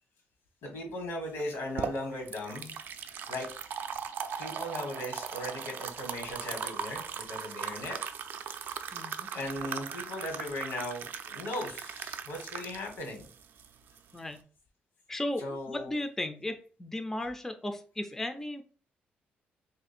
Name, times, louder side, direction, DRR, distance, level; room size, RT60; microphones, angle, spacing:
voice 1, 0.6-2.7 3.3-4.0 4.3-8.0 9.3-13.3 15.4-15.9, left 1 dB, 85° left, 3 dB, 1.3 m, -38 dB
sound 1, 1.4-14.4, right 7 dB, 65° right, 0.4 m, -39 dB
voice 2, 8.9-9.3 14.1-14.4 15.1-18.6, left 1 dB, 10° left, 7 dB, 0.3 m, -35 dB
3.1 x 2.5 x 4.2 m, 0.41 s
cardioid pair, 130°, 4 cm